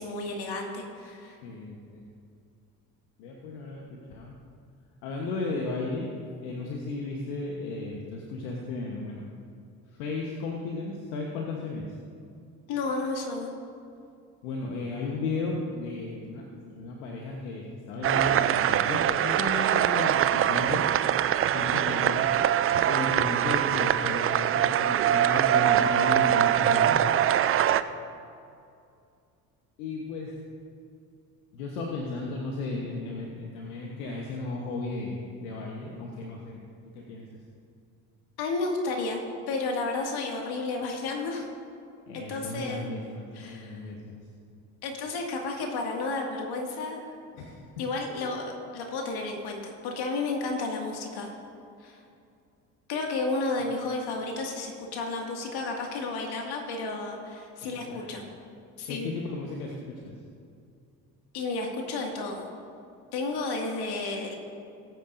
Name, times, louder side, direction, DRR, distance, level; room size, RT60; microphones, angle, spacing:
voice 1, 0.0-1.4 12.7-13.5 38.4-39.2 39.5-41.5 42.1-42.9 43.3-43.9 44.8-47.1 47.8-51.3 51.8-52.0 52.9-58.2 58.8-59.1 61.3-62.4 63.1-64.4, left 3 dB, 55° left, 1 dB, 2.2 m, -32 dB
voice 2, 1.4-2.0 3.2-4.3 5.0-9.3 9.9-11.9 14.4-20.8 21.5-22.3 22.8-27.0 29.8-30.4 31.5-36.6 36.9-37.4 42.1-44.2 47.4-47.7 57.6-58.1 58.9-60.1, left 3 dB, 75° left, 0 dB, 1.3 m, -34 dB
sound 1, 18.0-27.8, right 11 dB, 30° right, 0.4 m, -23 dB
19.5 x 9.1 x 2.7 m, 2.5 s
hypercardioid pair, 60°, 45 cm